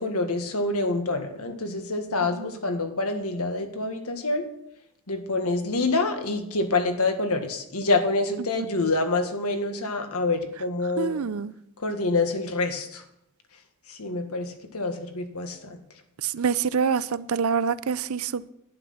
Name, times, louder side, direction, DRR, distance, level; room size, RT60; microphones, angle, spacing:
voice 1, 0.0-4.4 5.1-11.2 11.8-13.0 14.0-15.8, left 3 dB, 85° left, 6 dB, 1.7 m, -27 dB
voice 2, 11.0-11.5 16.2-18.5, right 6 dB, 75° right, 17 dB, 0.5 m, -26 dB
11.5 x 10.0 x 5.7 m, 0.81 s
head